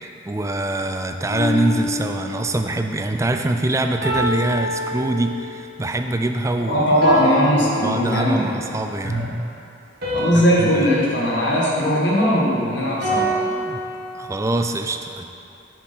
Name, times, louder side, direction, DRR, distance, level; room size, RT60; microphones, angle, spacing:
voice 1, 0.0-6.8 7.8-9.2 10.3-10.9 12.2-12.4 13.5-13.8 14.1-15.3, right 2 dB, 15° right, 6 dB, 0.3 m, -24 dB
sound 1, 1.3-2.6 4.0-5.6 7.0-8.5 10.0-12.4 13.0-14.3, equal, 55° right, 2.0 m, -27 dB
voice 2, 6.7-8.5 9.0-9.2 10.1-13.3, equal, 70° left, -4 dB, 1.7 m, -19 dB
7.5 x 7.1 x 4.4 m, 2.6 s
head